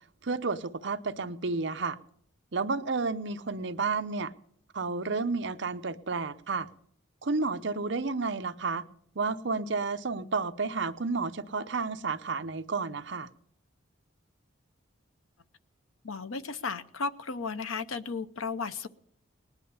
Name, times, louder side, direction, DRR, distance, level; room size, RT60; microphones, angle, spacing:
voice 1, 0.2-2.0 2.5-4.3 4.7-6.7 7.2-8.9 9.2-13.3, right 4 dB, 60° right, 0.7 m, -31 dB
voice 2, 16.0-18.9, left 4 dB, 85° left, 0.8 m, -34 dB
19.5 x 10.5 x 7.0 m
head